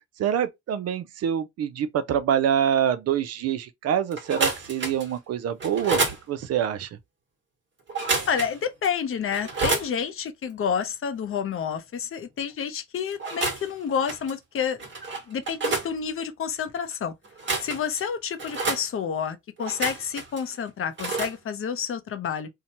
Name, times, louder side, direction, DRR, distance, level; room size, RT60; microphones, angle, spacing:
voice 1, 0.0-6.0 6.3-6.9, right 9 dB, 55° right, 0.4 m, -25 dB
sound 1, 4.1-5.1 5.6-6.2 7.9-8.6 8.8-8.9 9.3-9.9 13.1-13.7 14.1-14.3 14.8-15.9 17.2-18.0 18.4-18.8 19.6-20.4 21.0-21.3, right 3 dB, 40° right, 1.2 m, -28 dB
voice 2, 8.3-14.8 15.3-17.1 17.6-22.5, left 7 dB, 45° left, 0.6 m, -29 dB
2.7 x 2.2 x 2.8 m
cardioid pair, 90°, 30 cm